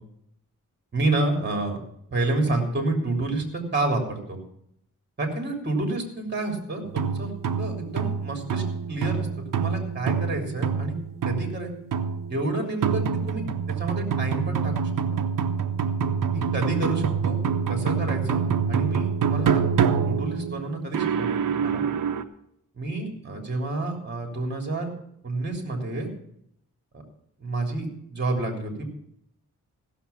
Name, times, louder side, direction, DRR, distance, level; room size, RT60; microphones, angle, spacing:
voice 1, 0.9-1.8 2.1-4.4 5.2-7.3 7.6-8.6 8.9-9.3 9.6-11.0 11.2-11.7 12.3-13.4 13.8-15.2 16.3-17.4 17.7-21.8 22.7-24.9 25.2-26.1 26.9-27.0 27.4-28.9, right 2 dB, 35° right, 2 dB, 3.3 m, -29 dB
sound 1, 6.8-22.2, right 6 dB, 85° right, 1.0 m, -26 dB
15.5 x 6.9 x 7.0 m, 0.74 s
wide cardioid pair, 115°, 32 cm